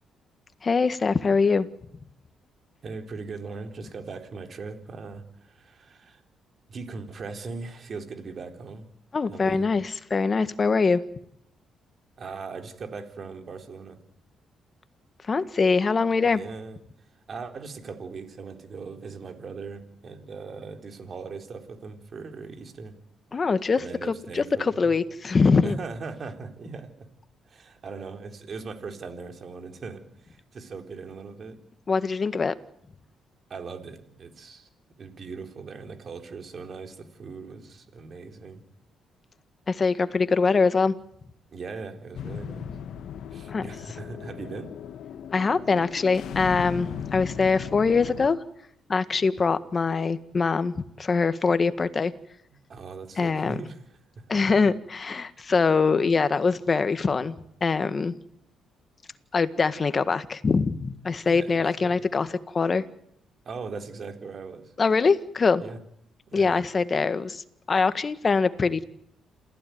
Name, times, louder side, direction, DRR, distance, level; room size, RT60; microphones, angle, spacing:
voice 1, 0.6-1.7 9.1-11.0 15.3-16.4 23.3-25.8 31.9-32.5 39.7-40.9 43.5-43.6 45.3-48.4 48.9-52.1 53.2-53.6 54.3-57.3 57.6-58.1 59.3-62.8 64.8-65.6 66.3-68.8, left 4 dB, 35° left, 11 dB, 1.7 m, -23 dB
voice 2, 2.8-6.2 6.7-8.9 9.3-9.7 12.2-14.0 16.2-16.8 17.3-23.0 23.8-24.9 25.6-27.1 27.5-31.6 33.5-34.7 35.0-38.6 41.5-42.7 43.3-44.7 46.9-47.3 52.7-53.8 61.2-62.0 63.5-64.7 65.6-65.8 66.3-66.6, right 4 dB, 50° right, 6 dB, 3.9 m, -39 dB
sound 1, 42.1-48.3, left 8 dB, 70° left, 1.3 m, -37 dB
28.0 x 15.5 x 9.6 m, 0.74 s
cardioid pair, 90°, 0 cm